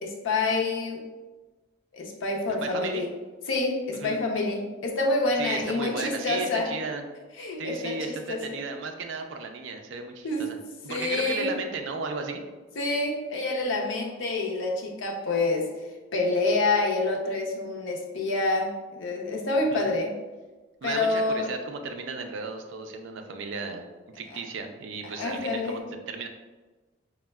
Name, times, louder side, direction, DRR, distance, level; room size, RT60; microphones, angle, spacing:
voice 1, 0.0-1.0 1.9-3.1 3.5-6.7 7.4-8.6 10.2-10.5 10.9-11.5 12.8-15.7 16.1-20.1 20.8-21.5 25.2-25.8, left 2 dB, 75° left, 0 dB, 0.5 m, -27 dB
voice 2, 2.6-3.0 3.9-4.2 5.4-7.1 7.6-10.6 10.8-12.4 19.7-19.9 20.8-23.8 24.1-26.3, right 4 dB, 70° right, 5 dB, 0.4 m, -35 dB
4.1 x 2.1 x 2.2 m, 1.2 s
head